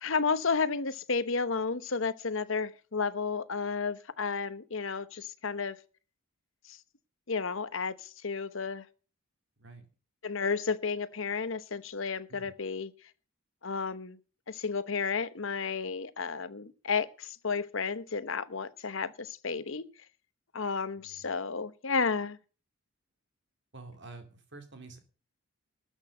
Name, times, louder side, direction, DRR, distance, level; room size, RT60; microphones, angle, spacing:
voice 1, 0.0-5.8 6.7-6.8 7.3-8.8 10.2-12.9 13.6-14.2 14.5-19.9 20.5-22.4, left 5 dB, 60° left, 0.9 m, -32 dB
voice 2, 21.0-21.3 23.7-25.0, right 3 dB, 50° right, 2.6 m, -48 dB
13.0 x 6.4 x 7.7 m
head